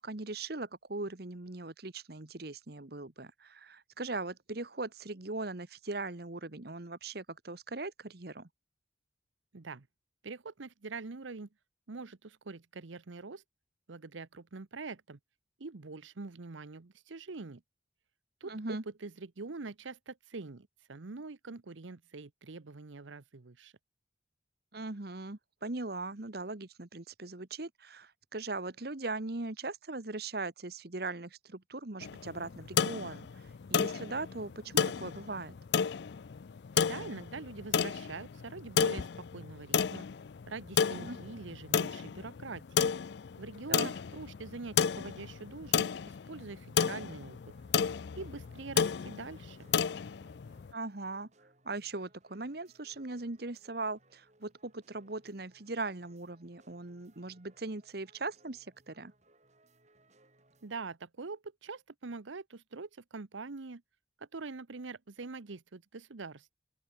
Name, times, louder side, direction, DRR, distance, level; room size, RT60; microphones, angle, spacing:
voice 1, 0.0-8.5 18.4-18.8 24.7-33.4 33.7-35.6 41.0-41.2 43.7-43.9 50.7-51.3 51.6-59.1, right 3 dB, 55° right, 1.3 m, -40 dB
voice 2, 9.5-9.9 10.2-11.5 11.9-13.4 13.9-15.2 15.6-17.6 18.4-23.7 36.8-40.1 40.5-42.9 43.4-47.5 48.2-49.7 60.6-63.8 64.2-66.5, right 3 dB, 80° right, 0.9 m, -44 dB
sound 1, 32.0-50.7, left 7 dB, 60° left, 0.4 m, -32 dB
sound 2, 46.9-61.0, right 2 dB, 35° right, 7.1 m, -67 dB
open air
head